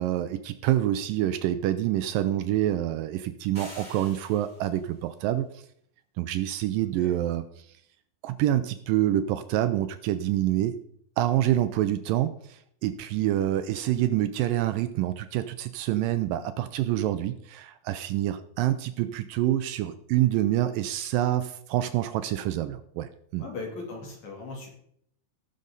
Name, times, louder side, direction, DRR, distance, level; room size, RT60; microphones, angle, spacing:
voice 1, 0.0-5.6 6.2-7.5 8.2-10.8 11.2-23.4, right 13 dB, 80° right, 11 dB, 2.2 m, -27 dB
sound 1, 3.5-4.8, right 1 dB, 15° right, 5.2 m, -46 dB
voice 2, 23.4-24.7, left 3 dB, 55° left, -1 dB, 4.0 m, -38 dB
18.0 x 6.6 x 4.0 m, 0.68 s
omnidirectional pair, 4.2 m